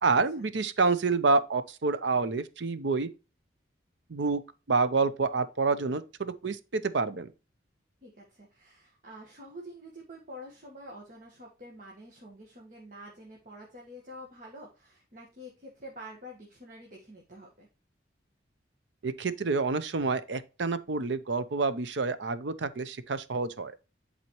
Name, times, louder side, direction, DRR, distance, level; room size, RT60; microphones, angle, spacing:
voice 1, 0.0-3.1 4.1-4.4 4.7-7.3 19.0-23.7, right 4 dB, 70° right, 0.6 m, -28 dB
voice 2, 8.0-17.7, equal, 45° right, 1.4 m, -47 dB
10.5 x 4.1 x 3.0 m
head